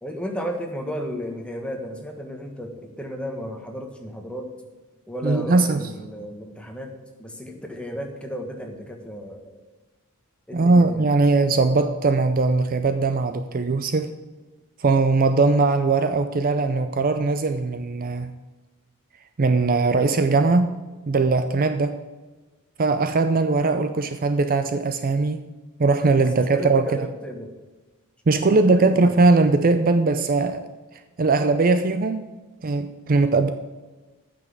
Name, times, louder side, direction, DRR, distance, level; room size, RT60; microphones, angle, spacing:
voice 1, 0.0-4.5 5.1-6.9 7.2-9.5 10.5-11.0 26.3-27.5 28.3-29.2, equal, 5° left, 1.4 m, -34 dB
voice 2, 5.2-5.9 10.5-14.1 14.8-18.3 19.4-20.8 21.1-22.0 22.8-25.4 25.8-27.1 28.3-30.7 30.9-32.3 32.6-33.5, right 3 dB, 40° right, 0.5 m, -20 dB
9.0 x 6.1 x 7.7 m
head